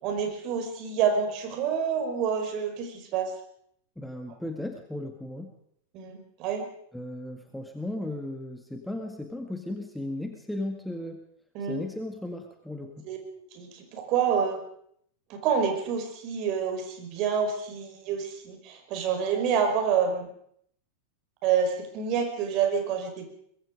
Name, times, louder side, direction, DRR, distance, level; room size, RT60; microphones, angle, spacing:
voice 1, 0.0-3.3 5.9-6.6 11.5-11.8 13.0-13.2 13.5-14.6 15.3-20.3 21.4-23.2, right 7 dB, 40° right, 5 dB, 5.1 m, -28 dB
voice 2, 4.0-5.5 6.9-11.2 11.6-13.1, left 1 dB, ahead, 4 dB, 1.9 m, -36 dB
23.5 x 21.5 x 5.2 m, 0.68 s
figure-of-eight pair, 90°, 0 cm